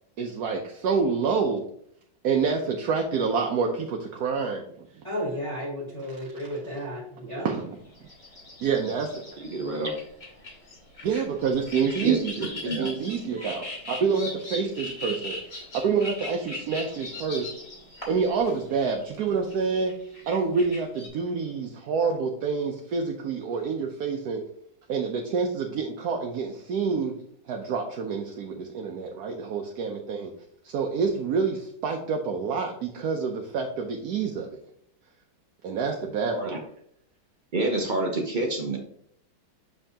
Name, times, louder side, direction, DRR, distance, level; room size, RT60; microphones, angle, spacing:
voice 1, 0.2-1.6 2.2-4.6 7.4-7.8 8.6-9.1 11.0-12.3 12.8-17.5 18.1-19.9 20.3-24.4 24.9-27.1 27.5-30.3 30.6-34.6 35.6-36.6, right 5 dB, 65° right, 2 dB, 1.1 m, -27 dB
voice 2, 5.0-7.5, equal, 20° left, -8 dB, 1.8 m, -33 dB
sound 1, 7.7-21.1, left 2 dB, 40° left, 2.8 m, -40 dB
voice 3, 9.4-9.9 12.0-12.9 36.3-36.6 37.5-38.8, right 2 dB, 85° right, 1 dB, 0.4 m, -28 dB
7.3 x 5.5 x 2.8 m, 0.67 s
omnidirectional pair, 2.1 m